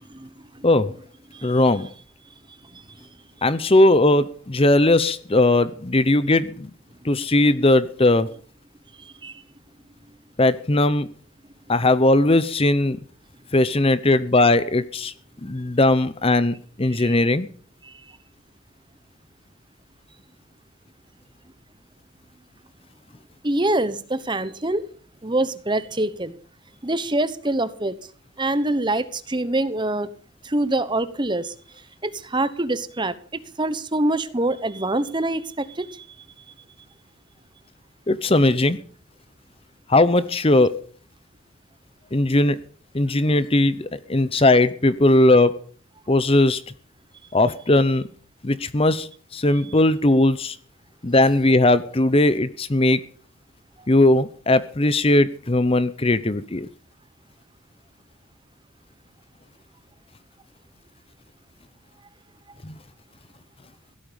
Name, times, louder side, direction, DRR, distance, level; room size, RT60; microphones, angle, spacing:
voice 1, 0.6-0.9 1.4-1.9 3.4-6.7 7.0-8.3 10.4-11.1 11.7-13.0 13.5-15.1 15.4-17.5 38.1-38.8 39.9-40.8 42.1-42.6 42.9-45.6 46.1-46.6 47.3-48.1 48.4-50.6 51.0-53.0 53.9-56.7 62.6-62.7, left 2 dB, 25° left, 0.7 m, -18 dB
voice 2, 9.0-9.3 16.9-17.1 17.8-17.9 23.4-24.9 25.2-26.4 26.8-28.0 28.4-30.1 30.4-31.5 32.0-33.1 33.6-36.1, right 2 dB, 20° right, 1.1 m, -25 dB
16.5 x 13.0 x 5.2 m
head